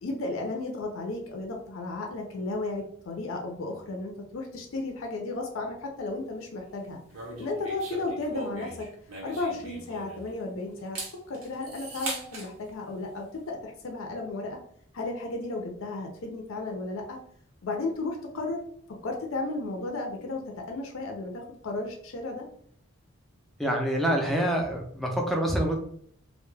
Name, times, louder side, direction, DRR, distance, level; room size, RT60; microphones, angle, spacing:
voice 1, 0.0-7.0 7.4-8.9 9.2-11.0 11.3-14.6 14.9-17.2 17.6-18.6 19.0-21.3 21.6-22.4, left 2 dB, 70° left, 1 dB, 0.5 m, -34 dB
sound 1, 7.1-10.4 10.8-12.5, right 2 dB, 85° right, 0.9 m, -39 dB
voice 2, 23.6-25.8, right 1 dB, ahead, 0 dB, 0.4 m, -26 dB
2.2 x 2.0 x 3.1 m, 0.63 s
head